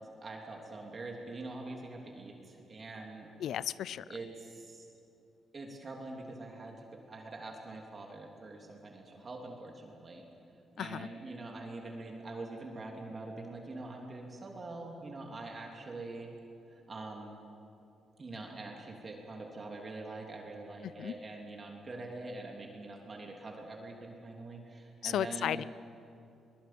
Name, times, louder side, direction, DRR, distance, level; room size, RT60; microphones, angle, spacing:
voice 1, 0.2-3.3 4.1-4.9 5.5-10.2 10.7-16.3 16.7-17.4 18.2-25.7, right 2 dB, 30° right, 0 dB, 3.2 m, -44 dB
voice 2, 3.4-4.0 10.8-11.1 20.8-21.1 25.0-25.6, left 10 dB, 80° left, 19 dB, 0.5 m, -34 dB
23.5 x 21.5 x 7.8 m, 2.8 s
cardioid pair, 130°, 0 cm